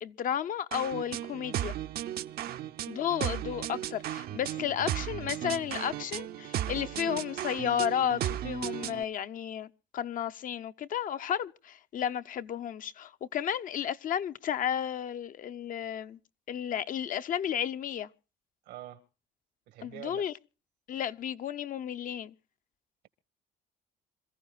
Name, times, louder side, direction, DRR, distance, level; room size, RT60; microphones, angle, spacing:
voice 1, 0.0-1.8 2.9-16.2 16.5-18.1 19.8-20.3 20.9-22.3, left 9 dB, 55° left, 0.7 m, -33 dB
sound 1, 0.7-9.0, right 12 dB, 65° right, 0.8 m, -35 dB
voice 2, 2.4-2.8 18.7-19.0 19.7-20.3, right 13 dB, 85° right, 1.9 m, -46 dB
27.0 x 15.0 x 2.4 m
cardioid pair, 110°, 17 cm